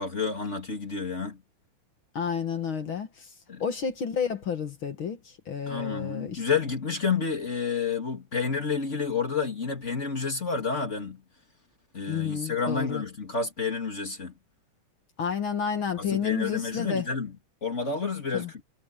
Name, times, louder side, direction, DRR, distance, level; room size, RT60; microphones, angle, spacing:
voice 1, 0.0-1.4 3.5-3.6 5.7-11.2 11.9-14.3 16.0-17.3 17.6-18.6, left 5 dB, 25° left, 1.9 m, -30 dB
voice 2, 2.1-3.3 3.6-6.4 12.1-13.0 15.2-17.1 18.3-18.5, left 7 dB, 45° left, 1.9 m, -30 dB
omnidirectional pair, 4.2 m